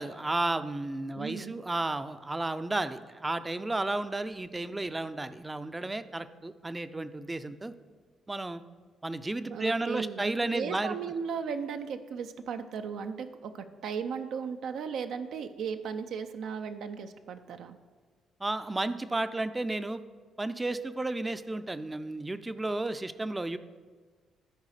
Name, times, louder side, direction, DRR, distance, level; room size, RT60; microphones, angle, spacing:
voice 1, 0.0-7.7 8.3-8.6 9.0-11.0 18.4-20.0 20.4-23.6, right 2 dB, 15° right, 12 dB, 0.5 m, -33 dB
voice 2, 1.2-1.5 9.5-17.8, right 6 dB, 75° right, 7 dB, 0.5 m, -36 dB
12.5 x 4.8 x 4.9 m, 1.5 s
cardioid pair, 90°, 0 cm